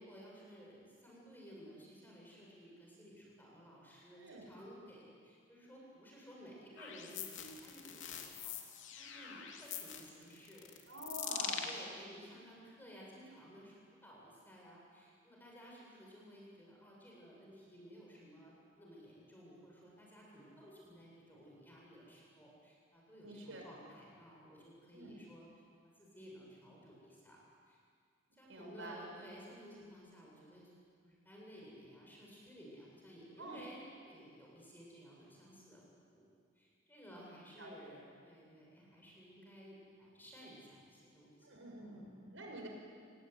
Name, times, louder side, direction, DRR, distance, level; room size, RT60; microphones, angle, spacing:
voice 1, 0.0-8.5 9.0-10.7 11.2-13.8 14.0-25.5 26.0-27.4 27.7-27.8 28.3-30.7 31.0-35.8 36.1-36.3 36.6-41.5 41.8-42.1 42.4-42.6, equal, 10° left, -4 dB, 7.9 m, -55 dB
voice 2, 4.2-4.5 10.9-11.6 23.2-23.7 24.9-25.1 28.5-29.0 33.4-33.6 37.6-38.0 41.4-42.7, right 2 dB, 75° right, 1 dB, 6.0 m, -48 dB
sound 1, 6.8-11.8, left 8 dB, 70° left, 3.0 m, -43 dB
30.0 x 19.0 x 9.8 m, 2.2 s
head